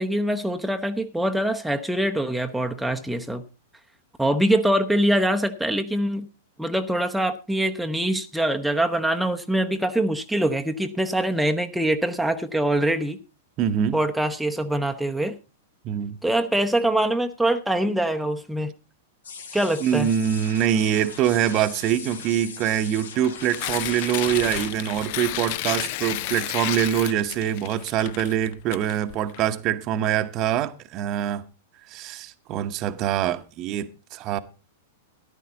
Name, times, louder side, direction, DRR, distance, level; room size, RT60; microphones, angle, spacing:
voice 1, 0.0-3.4 4.2-6.3 6.6-13.2 13.9-15.4 16.2-18.7 19.5-20.1, right 1 dB, ahead, 0.8 m, -24 dB
voice 2, 13.6-14.0 15.8-16.2 19.8-31.4 31.9-34.4, right 10 dB, 35° right, 0.9 m, -24 dB
sound 1, 19.2-24.7, left 5 dB, 65° left, 1.7 m, -40 dB
Tearing, 23.1-29.4, left 15 dB, 45° left, 0.5 m, -31 dB
13.5 x 11.0 x 3.8 m
figure-of-eight pair, 100°, 0 cm